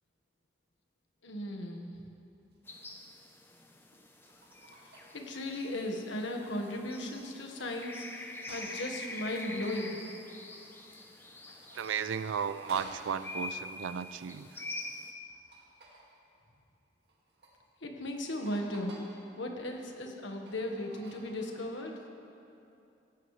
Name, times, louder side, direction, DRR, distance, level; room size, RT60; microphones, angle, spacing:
voice 1, 1.2-2.0 5.1-10.0 17.8-18.9 19.4-22.0, left 1 dB, 80° left, 2 dB, 1.5 m, -37 dB
sound 1, 2.5-2.7 3.9-5.7 6.2-8.9 9.2-11.1 11.4-13.1 15.1-16.2 17.0-17.6 18.0-18.1 18.5-19.1 19.6-21.8, right 2 dB, 55° right, 2.1 m, -54 dB
sound 2, 2.7-15.1, left 2 dB, 10° left, 0.7 m, -45 dB
voice 2, 11.8-14.5, right 7 dB, 90° right, 13 dB, 0.4 m, -34 dB
17.5 x 15.0 x 3.3 m, 2.7 s
head